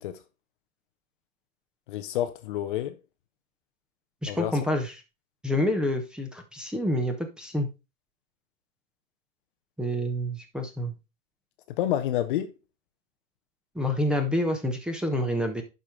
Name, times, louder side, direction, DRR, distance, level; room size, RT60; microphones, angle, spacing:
voice 1, 1.9-3.0 4.3-4.6 11.7-12.5, left 12 dB, 40° left, 0.8 m, -29 dB
voice 2, 4.2-4.9 5.4-7.7 9.8-10.9 13.7-15.6, left 1 dB, ahead, 1.0 m, -28 dB
11.5 x 5.2 x 3.7 m
hypercardioid pair, 120°, 42 cm